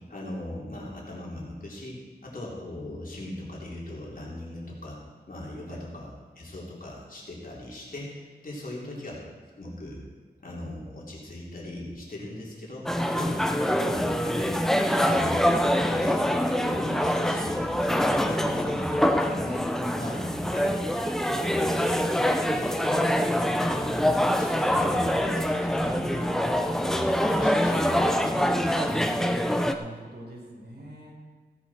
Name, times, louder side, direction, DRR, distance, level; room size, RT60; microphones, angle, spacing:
voice 1, 0.1-5.0 5.3-9.2 9.6-10.0 10.4-12.8 13.1-13.4 13.8-14.6 15.0-16.2 16.5-19.7 19.9-22.0 22.4-26.3 26.8-29.1, left 1 dB, 55° left, -4 dB, 3.5 m, -39 dB
sound 1, 12.9-29.7, equal, 5° left, 0.8 m, -25 dB
voice 2, 29.5-31.2, right 1 dB, 75° right, -3 dB, 4.4 m, -45 dB
16.5 x 10.5 x 4.4 m, 1.5 s
wide cardioid pair, 80°, 17 cm